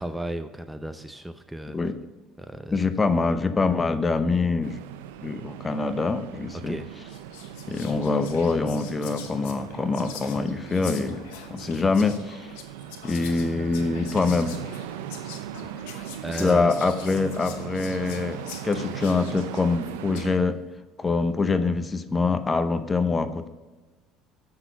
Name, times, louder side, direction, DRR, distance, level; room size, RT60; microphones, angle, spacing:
voice 1, 0.0-1.8 2.4-2.8 6.7-6.9 16.0-16.7, right 1 dB, 5° right, 9 dB, 0.6 m, -34 dB
voice 2, 2.7-4.8 5.2-6.7 7.7-11.2 11.5-12.5 13.0-14.5 16.3-18.4 18.6-20.6 21.0-23.5, left 3 dB, 25° left, 10 dB, 0.8 m, -24 dB
sound 1, 4.6-20.4, right 10 dB, 85° right, 0.5 m, -39 dB
Whispering, 6.5-6.7 7.1-20.4, left 8 dB, 80° left, 1.1 m, -44 dB
7.7 x 6.1 x 4.7 m, 1.2 s
supercardioid pair, 80°, 0 cm